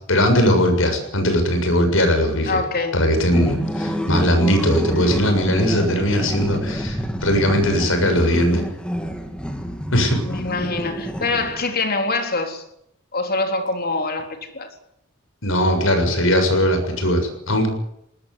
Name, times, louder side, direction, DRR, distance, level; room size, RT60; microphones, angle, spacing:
voice 1, 0.1-2.6 2.9-8.6 9.9-10.2 15.4-17.7, equal, 75° left, 7.1 m, -19 dB
voice 2, 2.5-3.0 10.2-12.6 13.1-14.7, left 3 dB, 50° left, 3.6 m, -24 dB
sound 1, 3.2-11.8, equal, 5° left, 2.7 m, -28 dB
20.5 x 20.0 x 9.7 m
head